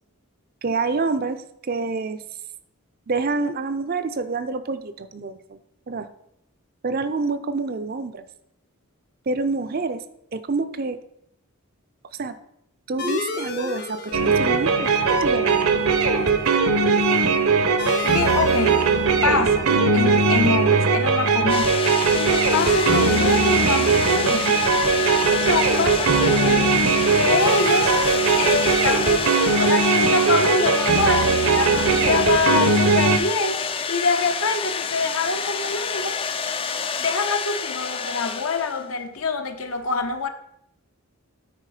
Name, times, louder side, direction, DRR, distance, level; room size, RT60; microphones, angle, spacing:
voice 1, 0.6-2.2 3.1-5.6 5.9-6.1 6.8-8.2 9.3-10.0 10.3-11.0 12.2-12.4 12.9-15.8, right 3 dB, 45° right, 11 dB, 0.5 m, -27 dB
sound 1, 13.0-32.1, left 4 dB, 45° left, 1.0 m, -37 dB
sound 2, 14.1-33.2, right 4 dB, 80° right, 0.9 m, -20 dB
voice 2, 18.0-18.9 19.2-21.8 22.1-24.6 25.3-26.8 27.1-27.9 28.3-33.6 33.9-36.2 37.0-40.3, left 3 dB, 70° left, 7 dB, 0.9 m, -25 dB
sound 3, 21.5-39.0, left 6 dB, 25° left, 0.4 m, -28 dB
9.2 x 4.8 x 4.9 m, 0.76 s
head